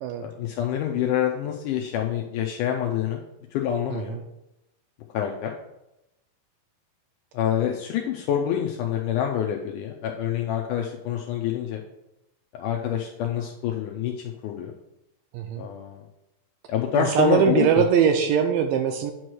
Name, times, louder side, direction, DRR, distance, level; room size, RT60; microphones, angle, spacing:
voice 1, 0.2-3.2 3.5-4.2 5.1-5.5 7.3-11.8 12.5-14.1 14.4-14.7 15.6-16.0 16.7-17.8, left 9 dB, 80° left, 1 dB, 1.9 m, -26 dB
voice 2, 3.9-4.2 15.3-15.7 16.9-19.1, right 8 dB, 80° right, 6 dB, 2.0 m, -22 dB
8.9 x 3.1 x 6.2 m, 0.90 s
omnidirectional pair, 4.2 m